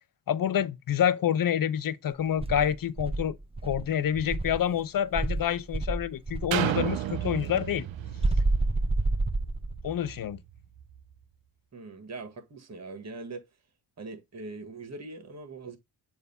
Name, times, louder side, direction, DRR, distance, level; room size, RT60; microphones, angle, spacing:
voice 1, 0.3-3.4 3.6-7.8 9.8-10.4, left 9 dB, 50° left, 0.7 m, -27 dB
Insect, 2.4-4.7 5.1-6.6 8.2-9.9, right 2 dB, 15° right, 0.8 m, -28 dB
sound 1, 6.5-10.3 10.8-10.9, right 12 dB, 80° right, 0.7 m, -33 dB
voice 2, 11.7-13.5 14.0-15.8, right 3 dB, 35° right, 1.5 m, -41 dB
7.1 x 2.7 x 5.4 m
cardioid pair, 60°, 45 cm